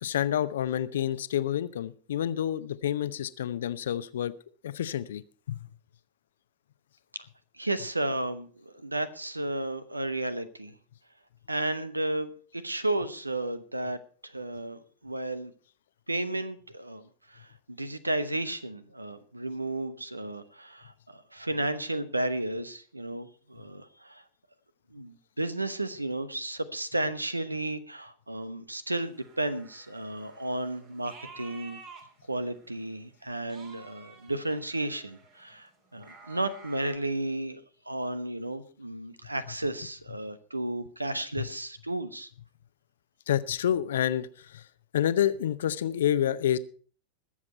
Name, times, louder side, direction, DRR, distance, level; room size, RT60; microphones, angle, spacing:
voice 1, 0.0-4.3 4.6-5.6 43.3-44.7 44.9-46.6, left 10 dB, 60° left, 15 dB, 0.7 m, -28 dB
voice 2, 7.6-10.7 11.5-14.0 14.2-15.5 16.1-24.2 24.9-31.8 32.3-37.6 37.9-42.3, right 2 dB, 85° right, 15 dB, 1.0 m, -33 dB
sound 1, 29.0-32.8 33.2-37.0, right 4 dB, 40° right, 2.8 m, -52 dB
21.0 x 7.4 x 4.4 m, 0.42 s
figure-of-eight pair, 90°, 0 cm